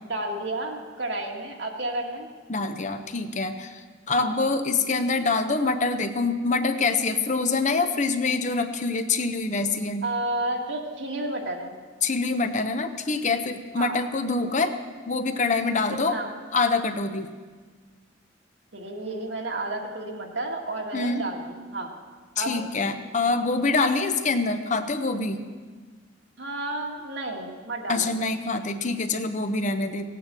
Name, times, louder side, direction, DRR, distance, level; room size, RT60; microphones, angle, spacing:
voice 1, 0.0-2.3 4.2-4.3 10.0-11.7 13.8-13.9 16.1-16.3 18.7-21.9 22.4-22.6 26.4-28.1, right 2 dB, 70° right, 1 dB, 1.9 m, -31 dB
voice 2, 2.5-10.0 12.0-14.8 15.1-16.2 16.5-17.3 20.9-21.2 22.4-25.4 27.9-30.1, left 3 dB, 40° left, 8 dB, 0.9 m, -25 dB
16.5 x 9.3 x 7.6 m, 1.5 s
head